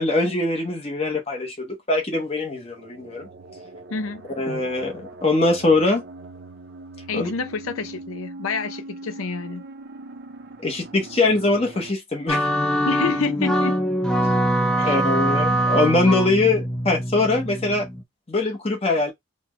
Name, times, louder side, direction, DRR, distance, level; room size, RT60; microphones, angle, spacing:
voice 1, 0.0-3.3 4.4-6.0 7.1-7.3 10.6-12.5 14.8-17.9 18.3-19.1, left 2 dB, 30° left, 0.9 m, -22 dB
sound 1, 2.5-11.9, right 2 dB, 50° right, 0.6 m, -41 dB
voice 2, 3.9-4.3 7.1-9.6 12.9-13.8 14.8-15.0, left 5 dB, 85° left, 0.6 m, -28 dB
sound 2, 12.3-18.0, equal, 5° left, 0.5 m, -23 dB
4.2 x 2.2 x 3.1 m
head